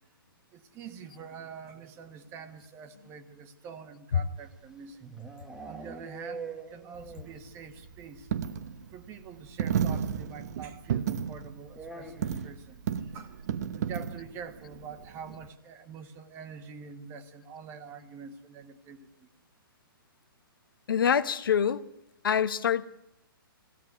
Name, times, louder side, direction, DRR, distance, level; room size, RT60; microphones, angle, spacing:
voice 1, 0.5-5.1 5.6-8.3 8.9-13.4 13.7-19.3, right 6 dB, 20° right, 9 dB, 1.6 m, -45 dB
sound 1, 4.5-7.5 7.8-7.9 8.2-8.3 8.5-8.7 9.9-10.0 11.7-12.6, right 4 dB, 5° right, 1.2 m, -43 dB
Coin (dropping), 6.9-15.5, right 8 dB, 45° right, 1.2 m, -34 dB
voice 2, 20.9-21.8 22.2-22.8, left 8 dB, 65° left, 12 dB, 1.3 m, -25 dB
22.5 x 16.5 x 9.5 m, 0.86 s
hypercardioid pair, 160°, 12 cm